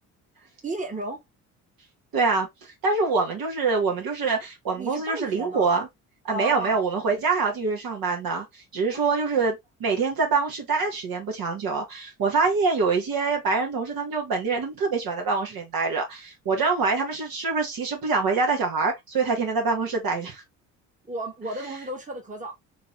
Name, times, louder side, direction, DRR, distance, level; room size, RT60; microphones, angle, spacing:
voice 1, 0.6-1.2 4.7-5.7 6.3-6.8 8.9-9.3 21.0-22.5, right 2 dB, 15° right, 1.4 m, -33 dB
voice 2, 2.1-5.9 6.2-20.4, right 4 dB, 55° right, 1.5 m, -25 dB
3.7 x 2.9 x 2.9 m
hypercardioid pair, 50°, 43 cm